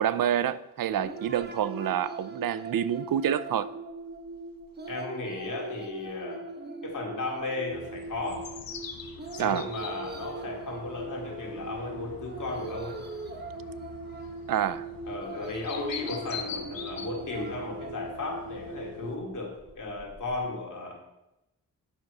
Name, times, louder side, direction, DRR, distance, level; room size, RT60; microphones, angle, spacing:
voice 1, 0.0-3.7 9.4-9.7 14.5-14.9, right 10 dB, 75° right, 0.5 m, -27 dB
sound 1, 0.8-20.4, right 3 dB, 30° right, 1.0 m, -40 dB
voice 2, 4.9-6.5 6.8-8.5 9.3-13.0 15.1-20.9, left 3 dB, 60° left, 2.4 m, -35 dB
sound 2, 7.7-19.2, left 7 dB, 85° left, 0.9 m, -44 dB
9.1 x 6.1 x 5.4 m
wide cardioid pair, 95°, 35 cm